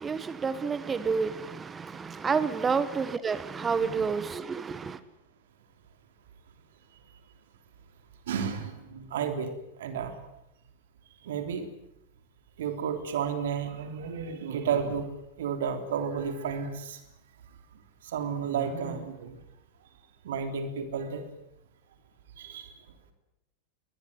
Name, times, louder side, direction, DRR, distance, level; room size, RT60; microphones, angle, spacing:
voice 1, 0.0-5.0, right 5 dB, 15° right, 1.5 m, -29 dB
voice 2, 8.3-9.5 9.8-10.2 11.2-11.7 12.6-15.1 15.4-17.0 18.0-19.4 20.2-21.2 22.4-22.7, right 7 dB, 60° right, 3.4 m, -32 dB
22.5 x 20.5 x 9.6 m
figure-of-eight pair, 90°, 0 cm